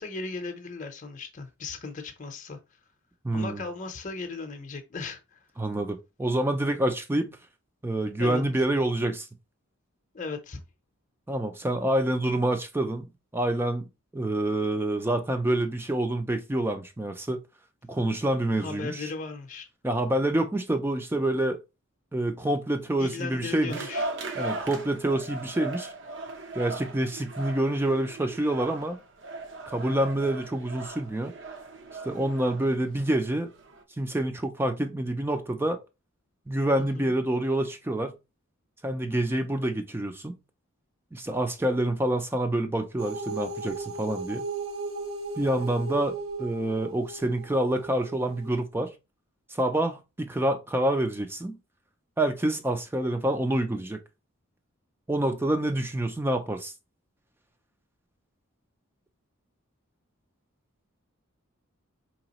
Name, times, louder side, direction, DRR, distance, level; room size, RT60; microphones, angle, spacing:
voice 1, 0.0-2.6 3.3-5.4 8.2-8.4 10.1-10.6 18.6-19.7 23.0-24.1 36.8-37.1, left 4 dB, 35° left, 0.7 m, -37 dB
voice 2, 3.2-3.6 5.6-7.4 7.8-9.3 11.3-13.9 14.1-17.4 17.9-19.1 19.8-21.6 22.1-23.8 24.4-25.9 26.6-29.0 29.7-31.4 32.0-33.5 34.0-35.8 36.5-38.2 38.8-40.4 41.1-44.4 45.4-48.9 49.5-51.6 52.2-54.0 55.1-56.7, right 1 dB, 10° right, 0.3 m, -27 dB
sound 1, 23.7-33.8, right 2 dB, 55° right, 0.7 m, -38 dB
sound 2, 43.0-48.6, right 3 dB, 75° right, 0.9 m, -36 dB
4.7 x 2.9 x 2.9 m
head